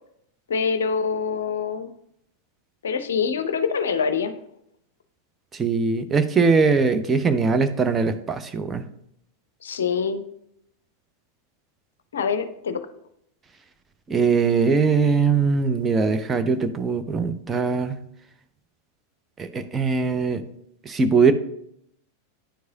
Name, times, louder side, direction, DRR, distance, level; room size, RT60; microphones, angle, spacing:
voice 1, 0.5-1.9 2.8-4.3 9.6-10.2 12.1-12.8, left 6 dB, 65° left, 10 dB, 0.5 m, -25 dB
voice 2, 5.5-8.8 14.1-18.0 19.4-20.4 20.9-21.3, right 4 dB, 20° right, 9 dB, 0.5 m, -21 dB
10.0 x 4.7 x 2.7 m, 0.75 s
figure-of-eight pair, 90°, 0 cm